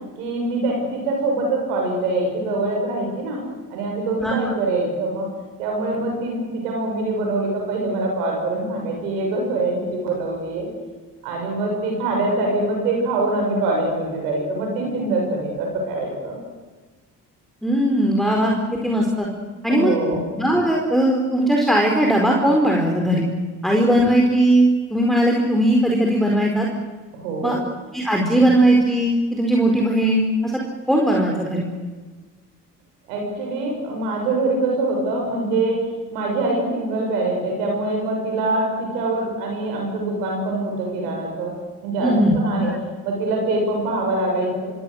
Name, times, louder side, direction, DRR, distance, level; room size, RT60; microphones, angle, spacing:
voice 1, 0.2-3.4 3.7-5.3 5.6-10.7 11.2-16.4 19.7-20.2 27.1-27.6 33.1-41.5 41.8-42.7 43.0-44.6, right 2 dB, 80° right, 0 dB, 6.9 m, -24 dB
voice 2, 17.6-19.3 19.6-19.9 20.4-23.3 23.6-26.7 27.4-27.6 27.9-30.6 30.9-31.6 42.0-42.7, right 1 dB, ahead, -1 dB, 4.6 m, -19 dB
25.5 x 25.0 x 6.6 m, 1.4 s
hypercardioid pair, 45°, 46 cm